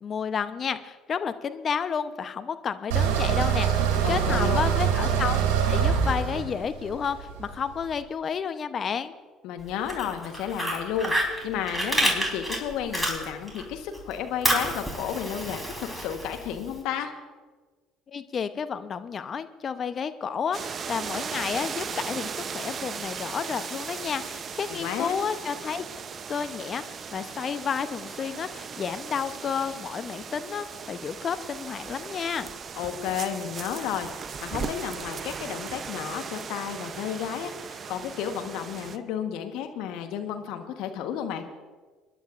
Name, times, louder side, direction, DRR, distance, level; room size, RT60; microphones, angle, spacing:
voice 1, 0.0-5.4 5.7-9.1 18.1-25.9 26.3-32.5, left 7 dB, 45° left, 11 dB, 0.8 m, -31 dB
sound 1, 2.9-7.9, right 8 dB, 75° right, 2.4 m, -24 dB
voice 2, 4.0-4.7 9.4-11.1 11.4-17.1 24.7-25.2 32.7-41.4, left 8 dB, 70° left, 6 dB, 1.3 m, -32 dB
Fire, 9.7-13.6 13.9-16.7, equal, 5° right, 3.9 m, -29 dB
sound 2, 20.5-39.0, right 6 dB, 40° right, 0.7 m, -37 dB
28.0 x 11.0 x 2.6 m, 1.4 s
hypercardioid pair, 60°, 0 cm